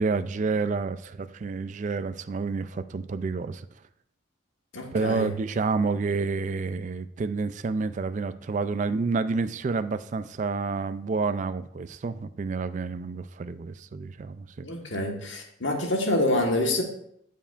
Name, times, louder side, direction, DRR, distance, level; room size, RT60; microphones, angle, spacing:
voice 1, 0.0-3.7 4.9-14.7, right 4 dB, 35° right, 0.3 m, -29 dB
voice 2, 4.7-5.4 14.6-16.8, left 1 dB, 65° left, 1.4 m, -26 dB
13.0 x 5.5 x 2.5 m
head